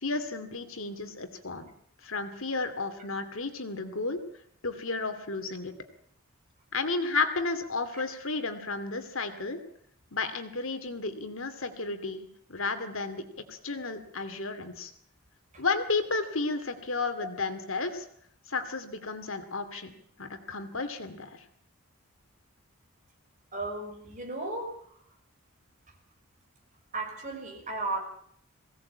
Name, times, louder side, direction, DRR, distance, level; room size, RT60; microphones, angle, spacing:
voice 1, 0.0-1.7 2.0-4.2 4.6-5.7 6.7-9.6 10.1-14.9 15.6-18.0 18.5-19.9 20.2-21.4, left 3 dB, 65° left, 9 dB, 2.5 m, -33 dB
voice 2, 23.5-24.7 26.9-28.0, right 2 dB, 35° right, 2 dB, 5.7 m, -34 dB
22.0 x 17.0 x 8.7 m, 0.67 s
head